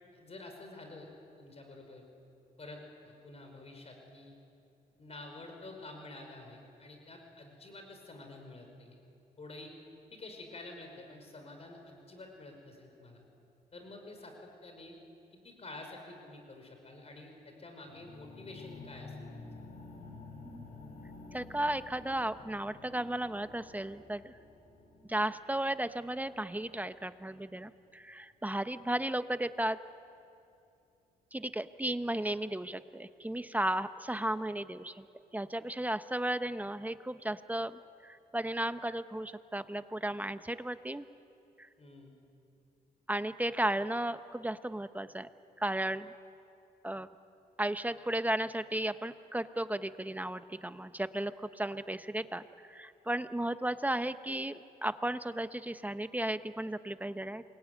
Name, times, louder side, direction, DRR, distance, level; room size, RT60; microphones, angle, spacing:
voice 1, 0.1-1.1 1.4-2.1 2.6-4.3 5.0-9.0 9.4-9.7 10.1-13.2 13.7-15.0 15.3-19.5 41.8-42.1, left 2 dB, 40° left, 3 dB, 5.3 m, -49 dB
sound 1, 17.9-27.8, left 3 dB, 75° left, 7.5 m, -51 dB
voice 2, 21.3-24.4 25.1-29.8 31.3-35.0 35.3-41.1 41.6-41.7 43.1-45.3 45.6-46.1 46.8-47.1 47.6-57.4, right 1 dB, 10° right, 11 dB, 0.9 m, -34 dB
28.0 x 23.0 x 9.4 m, 2.7 s
cardioid pair, 90°, 16 cm